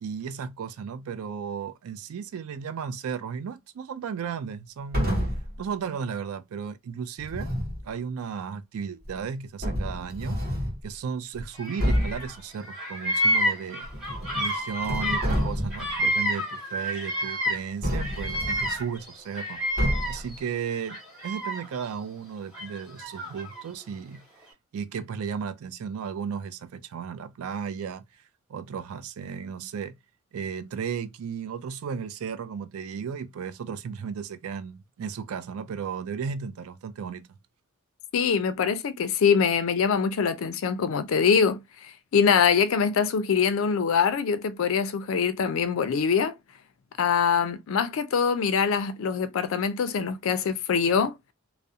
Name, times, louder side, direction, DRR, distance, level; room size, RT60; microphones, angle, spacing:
voice 1, 0.0-5.1 5.6-7.5 7.8-10.4 10.8-13.9 14.3-19.6 20.1-21.0 21.2-24.3 24.7-28.0 28.5-30.0 30.3-37.3, right 6 dB, 75° right, 0.3 m, -34 dB
sound 1, 4.9-5.5 7.2-7.8 9.0-9.1 9.6-10.8 11.3-11.4 11.8-12.3 13.8-14.5 14.8-15.9 17.8-18.8 19.8-20.3, equal, 45° right, 0.9 m, -28 dB
Bird vocalization bird call bird song, 11.6-12.4 12.6-17.7 18.0-20.4 20.8-21.8 22.5-23.6, equal, 5° right, 0.8 m, -29 dB
voice 2, 38.1-46.3 47.0-51.2, left 6 dB, 60° left, 0.4 m, -24 dB
2.3 x 2.0 x 2.6 m
head